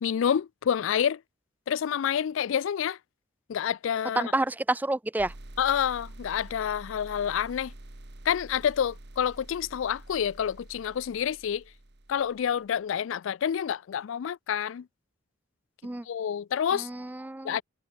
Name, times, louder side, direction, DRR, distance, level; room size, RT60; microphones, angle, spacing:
voice 1, 0.0-1.2 1.7-3.0 3.5-4.3 5.6-7.7 8.2-11.6 12.1-14.9 16.1-16.9 17.4-17.6, left 8 dB, 70° left, 0.4 m, -28 dB
voice 2, 4.2-5.3 15.8-16.0 16.7-17.6, right 2 dB, 10° right, 0.4 m, -29 dB
sound 1, 5.2-12.7, right 1 dB, 60° right, 1.9 m, -47 dB
head